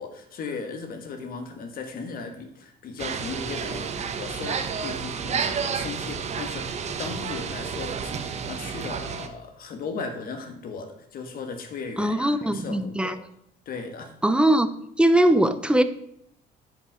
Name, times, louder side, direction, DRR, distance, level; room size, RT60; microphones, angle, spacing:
voice 1, 0.0-13.2 13.6-14.1, left 4 dB, 60° left, 6 dB, 1.4 m, -37 dB
sound 1, 3.0-9.3, right 6 dB, 40° right, 0.9 m, -31 dB
voice 2, 12.0-13.2 14.2-14.7 15.0-15.8, right 1 dB, 5° right, 11 dB, 0.6 m, -20 dB
9.7 x 5.2 x 4.8 m, 0.73 s
cardioid pair, 110°, 17 cm